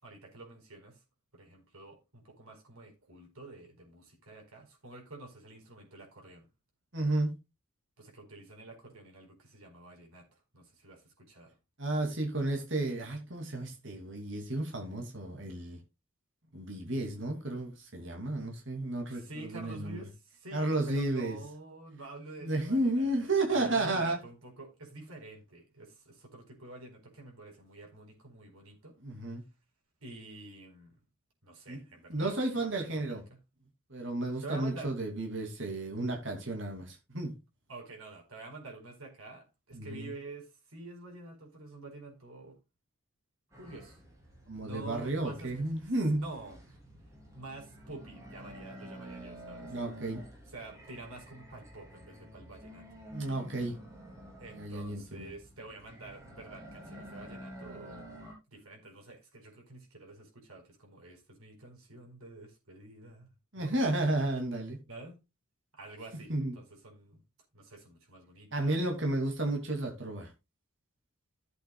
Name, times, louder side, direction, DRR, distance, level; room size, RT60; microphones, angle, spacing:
voice 1, 0.0-1.0 1.3-6.5 8.0-11.6 19.1-29.0 30.0-31.0 31.4-33.2 34.4-34.9 37.7-42.6 43.5-44.0 44.5-45.6 46.1-46.6 47.3-49.7 50.5-52.9 54.4-58.1 58.5-63.3 63.6-63.7 64.8-65.2 65.7-67.2 67.5-69.0, right 2 dB, 90° right, 4.6 m, -48 dB
voice 2, 6.9-7.3 11.8-15.8 16.5-20.0 20.5-21.4 22.4-24.2 29.0-29.4 31.7-31.8 32.1-33.2 33.9-37.3 39.7-40.1 44.5-46.2 49.7-50.2 53.1-53.8 54.5-55.3 63.5-64.8 66.3-66.6 68.5-70.3, right 2 dB, 60° right, 2.7 m, -32 dB
sound 1, 43.5-58.3, right 1 dB, 15° right, 3.5 m, -50 dB
15.5 x 8.0 x 2.3 m
head